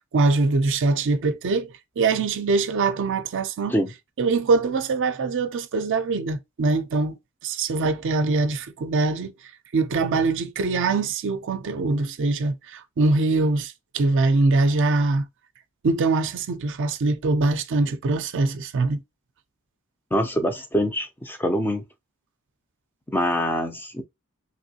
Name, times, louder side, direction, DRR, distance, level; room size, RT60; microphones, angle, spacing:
voice 1, 0.1-3.7 4.2-7.2 7.4-9.3 9.7-15.3 15.8-19.0, right 3 dB, 55° right, 0.4 m, -23 dB
voice 2, 20.1-21.8 23.1-24.0, equal, 10° left, 0.4 m, -24 dB
3.0 x 3.0 x 2.7 m
head